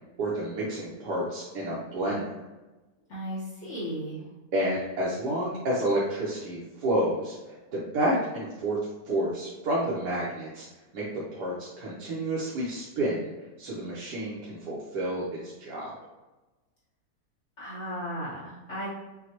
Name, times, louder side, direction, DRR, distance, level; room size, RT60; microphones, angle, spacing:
voice 1, 0.2-2.4 4.5-8.8 9.1-10.7 10.9-13.3 13.6-15.9, right 1 dB, 75° right, -7 dB, 1.5 m, -30 dB
voice 2, 3.1-4.3 17.6-19.0, equal, 50° left, -8 dB, 1.2 m, -35 dB
6.1 x 2.3 x 2.9 m, 1.1 s
omnidirectional pair, 1.8 m